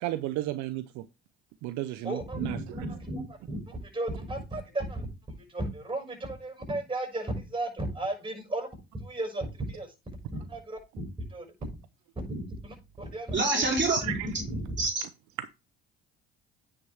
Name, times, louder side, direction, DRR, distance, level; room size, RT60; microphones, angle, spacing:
voice 1, 0.0-1.1 1.6-2.6 14.0-14.3 15.4-15.5, right 15 dB, 70° right, 0.6 m, -33 dB
voice 2, 2.0-3.6 3.9-5.1 5.5-8.7 9.0-9.9 10.3-10.8 11.3-11.5 12.3-13.6 14.0-14.1 14.5-14.6, right 1 dB, 15° right, 5.9 m, -34 dB
voice 3, 13.3-14.0 14.8-15.0, right 3 dB, 35° right, 3.3 m, -25 dB
9.4 x 5.9 x 3.4 m
hypercardioid pair, 65°, 31 cm